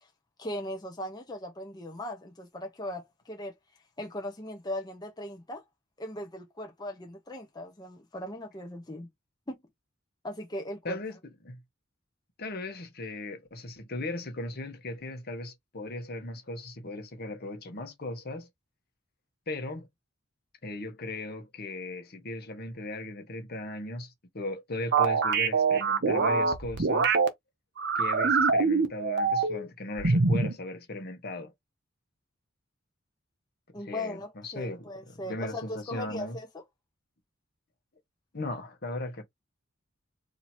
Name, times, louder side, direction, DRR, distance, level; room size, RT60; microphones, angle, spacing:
voice 1, 0.4-3.5 4.0-5.6 6.0-9.1 9.5-9.6 10.2-11.0 33.7-36.6, left 1 dB, 20° left, 0.8 m, -38 dB
voice 2, 10.8-11.2 11.4-11.6 12.4-18.5 19.5-19.9 20.6-27.1 27.9-31.5 33.8-36.4 38.3-39.2, left 2 dB, 50° left, 1.1 m, -37 dB
sound 1, 24.9-27.3 27.8-29.7 30.0-30.5, right 4 dB, 55° right, 0.8 m, -24 dB
2.8 x 2.8 x 4.3 m
head